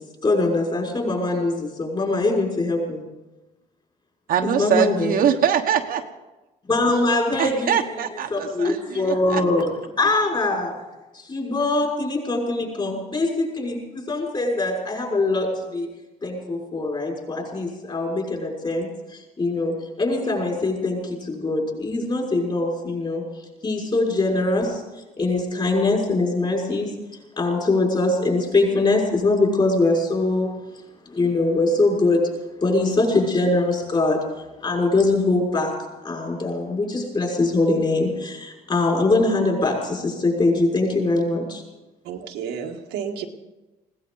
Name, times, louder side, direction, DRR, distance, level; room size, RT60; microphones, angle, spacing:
voice 1, 0.2-3.0 4.4-5.2 6.7-7.7 8.3-9.7 10.0-10.8 11.1-15.9 16.2-23.2 23.6-24.8 25.2-26.9 27.4-30.5 31.1-32.3 32.6-34.2 34.6-35.7 36.0-41.6, left 2 dB, 30° left, -1 dB, 6.0 m, -22 dB
voice 2, 4.3-6.0 7.4-9.4, right 8 dB, 60° right, 4 dB, 1.3 m, -23 dB
voice 3, 42.0-43.3, right 7 dB, 90° right, 2 dB, 1.7 m, -31 dB
20.5 x 17.0 x 4.0 m, 1.1 s
cardioid pair, 110°, 17 cm